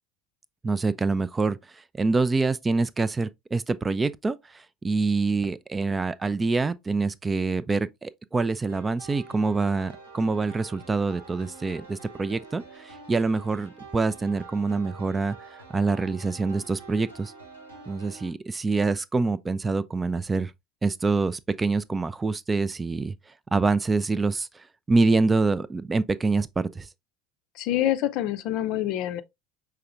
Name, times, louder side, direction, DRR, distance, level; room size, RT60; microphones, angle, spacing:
voice 1, 0.6-15.4 15.7-17.3 17.9-20.5 20.8-23.2 23.5-26.9, right 3 dB, 20° right, 0.3 m, -26 dB
sound 1, 8.7-18.3, right 4 dB, 85° right, 1.2 m, -46 dB
voice 2, 27.6-29.2, left 12 dB, 55° left, 0.4 m, -26 dB
5.6 x 3.5 x 2.4 m
figure-of-eight pair, 70°, 0 cm